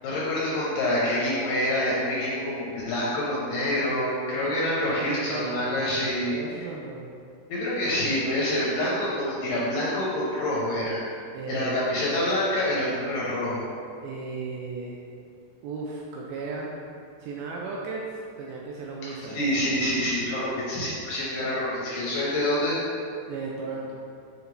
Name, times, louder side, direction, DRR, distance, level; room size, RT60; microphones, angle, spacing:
voice 1, 0.0-6.4 7.5-11.0 11.5-13.6 19.3-22.8, left 1 dB, 75° left, -6 dB, 2.1 m, -26 dB
voice 2, 5.0-5.7 6.3-7.1 11.3-12.0 14.0-15.0 15.6-16.8 17.2-19.4 23.3-24.0, right 4 dB, 80° right, -2 dB, 2.2 m, -35 dB
6.5 x 4.9 x 3.2 m, 2.3 s
omnidirectional pair, 4.7 m